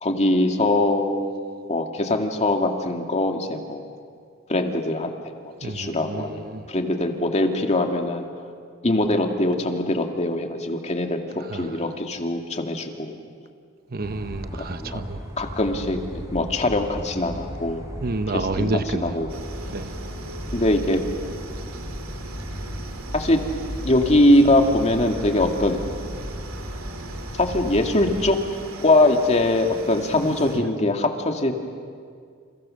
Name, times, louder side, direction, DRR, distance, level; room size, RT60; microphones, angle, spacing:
voice 1, 0.0-1.4 1.7-3.8 4.5-5.1 5.6-8.3 8.8-13.2 14.7-15.0 15.4-17.9 18.3-18.7 19.0-19.3 20.5-21.0 23.1-23.4 23.8-25.8 27.4-28.4 28.8-31.5, left 1 dB, 30° left, 3 dB, 2.2 m, -22 dB
voice 2, 5.6-6.6 11.5-11.7 13.9-15.2 18.0-19.3 19.7-19.9 30.2-30.6, right 2 dB, 45° right, 10 dB, 0.9 m, -29 dB
sound 1, 14.0-28.3, equal, 15° right, 5.2 m, -35 dB
sound 2, 19.3-30.6, right 2 dB, 85° right, 2.5 m, -40 dB
30.0 x 28.5 x 6.5 m, 2.1 s
head